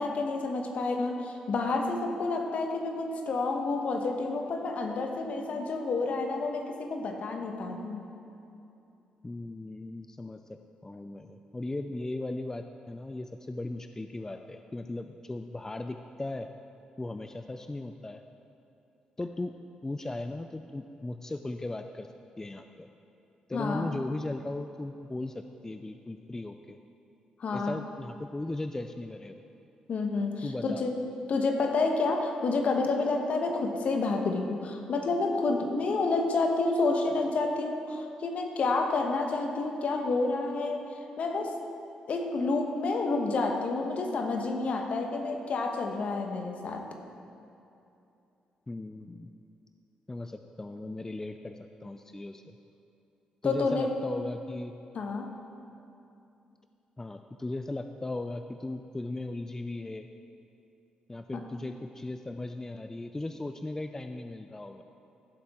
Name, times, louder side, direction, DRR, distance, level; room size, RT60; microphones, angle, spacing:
voice 1, 0.0-8.0 23.5-23.9 27.4-27.7 29.9-31.0 31.3-40.9 41.2-41.6 42.1-46.8 53.4-53.9 54.9-55.3 61.3-61.4, left 3 dB, 60° left, 4 dB, 1.2 m, -29 dB
voice 2, 9.2-16.5 17.0-18.2 19.2-19.5 19.8-22.1 22.4-22.9 23.5-26.8 27.5-29.4 30.4-30.8 48.7-49.3 50.1-52.6 53.4-54.7 57.0-60.1 61.1-64.8, left 2 dB, 20° left, 7 dB, 0.4 m, -37 dB
15.5 x 7.3 x 3.7 m, 2.7 s
supercardioid pair, 60°, 3 cm